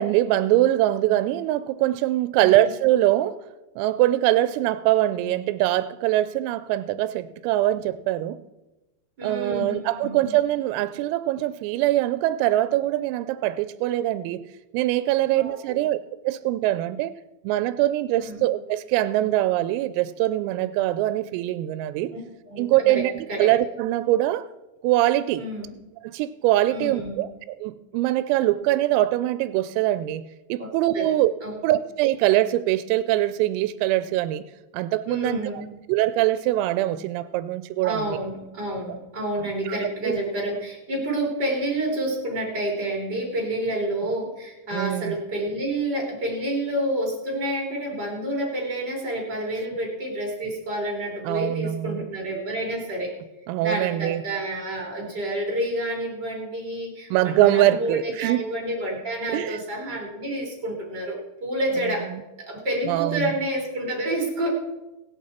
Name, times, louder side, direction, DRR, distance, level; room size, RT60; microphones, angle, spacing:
voice 1, 0.0-3.3 3.8-8.4 9.2-14.4 14.7-16.0 16.2-17.1 17.4-22.1 22.6-24.4 24.8-25.4 26.0-30.2 30.5-31.3 31.6-34.4 34.7-35.4 35.9-38.2 38.9-39.0 39.2-39.8 40.0-40.2 44.7-45.1 51.3-52.1 53.5-54.2 57.1-58.4 59.3-59.6 62.1-62.2 62.9-63.3, right 14 dB, 85° right, 3.2 m, -23 dB
voice 2, 9.2-10.3 15.4-15.8 18.1-18.4 22.5-23.5 25.3-25.7 26.7-27.2 30.6-30.7 30.9-31.1 31.4-31.6 35.1-35.7 37.8-53.1 53.6-62.1 62.4-64.5, right 1 dB, 25° right, 2.9 m, -29 dB
22.5 x 8.2 x 4.2 m
omnidirectional pair, 5.9 m